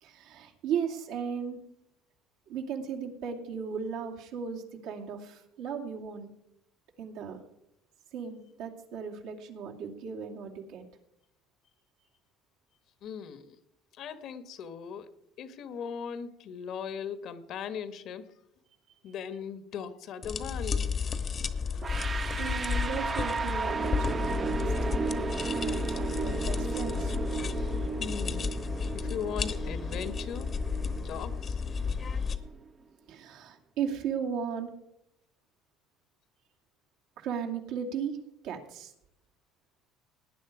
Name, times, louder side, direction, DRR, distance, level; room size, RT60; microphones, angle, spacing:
voice 1, 0.0-1.6 2.5-6.3 7.0-7.4 8.1-10.8 22.4-25.2 25.6-27.2 31.8-32.0 33.1-34.7 37.2-38.2 38.4-38.9, right 7 dB, 80° right, 1 dB, 2.4 m, -36 dB
voice 2, 13.0-13.6 14.0-15.1 15.4-18.3 19.0-20.9 28.0-28.5 28.9-30.5 31.0-31.6, left 7 dB, 60° left, 12 dB, 1.3 m, -38 dB
sound 1, 20.2-32.4, left 5 dB, 40° left, 1.1 m, -32 dB
sound 2, 21.8-32.7, right 5 dB, 30° right, 0.6 m, -35 dB
18.0 x 9.6 x 4.9 m, 0.79 s
supercardioid pair, 105°, 0 cm